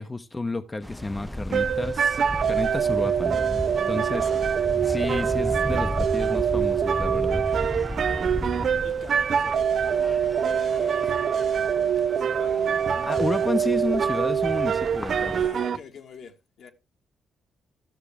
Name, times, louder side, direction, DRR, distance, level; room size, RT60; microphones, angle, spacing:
voice 1, 0.0-2.2 2.4-3.4 3.9-7.4 13.0-15.3, left 2 dB, 25° left, 0.8 m, -31 dB
sound 1, 0.8-15.5, equal, ahead, 0.4 m, -35 dB
sound 2, 1.5-15.8, right 7 dB, 60° right, 0.5 m, -24 dB
voice 2, 8.8-13.3 15.3-16.7, left 6 dB, 70° left, 1.6 m, -45 dB
13.0 x 6.5 x 3.5 m
supercardioid pair, 65°, 0 cm